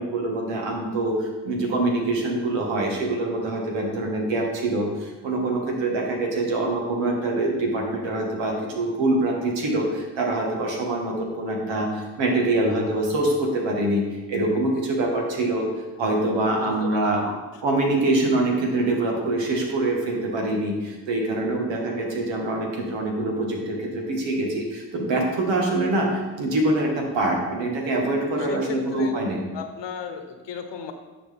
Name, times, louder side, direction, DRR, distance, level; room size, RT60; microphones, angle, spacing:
voice 1, 0.0-14.0 14.3-15.7 16.0-17.3 17.6-29.4, right 2 dB, 85° right, 0 dB, 1.7 m, -24 dB
voice 2, 16.6-17.3 28.3-29.2 29.5-30.9, left 6 dB, 75° left, 7 dB, 0.9 m, -35 dB
10.0 x 4.9 x 3.5 m, 1.2 s
supercardioid pair, 50°, 43 cm